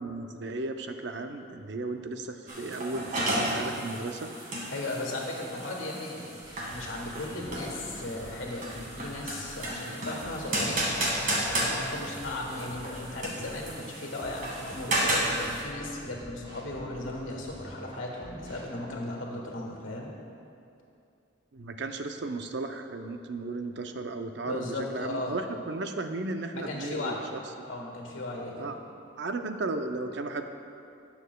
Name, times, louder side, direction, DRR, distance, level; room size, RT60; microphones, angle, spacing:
voice 1, 0.0-4.3 21.5-27.4 28.6-28.8 29.2-30.5, right 3 dB, 60° right, 6 dB, 0.6 m, -35 dB
sound 1, 2.5-15.6, right 1 dB, 45° right, 1.8 m, -33 dB
voice 2, 4.7-6.4 6.7-10.9 11.6-20.1 24.4-25.4 26.5-27.2 27.7-28.7, left 2 dB, 90° left, 0 dB, 1.6 m, -36 dB
sound 2, 6.4-9.8 10.2-13.8 14.2-18.7, right 1 dB, 25° right, 1.5 m, -48 dB
17.5 x 7.0 x 2.3 m, 2.6 s
head